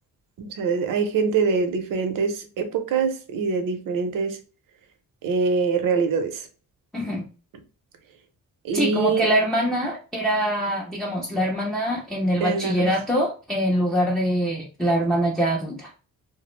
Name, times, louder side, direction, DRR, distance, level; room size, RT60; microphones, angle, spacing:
voice 1, 0.4-4.4 5.2-6.5 8.6-9.3 12.4-12.9, right 5 dB, 80° right, 0.6 m, -24 dB
voice 2, 6.9-7.2 8.7-15.9, equal, ahead, 0.4 m, -24 dB
2.3 x 2.0 x 3.0 m
cardioid pair, 135°, 33 cm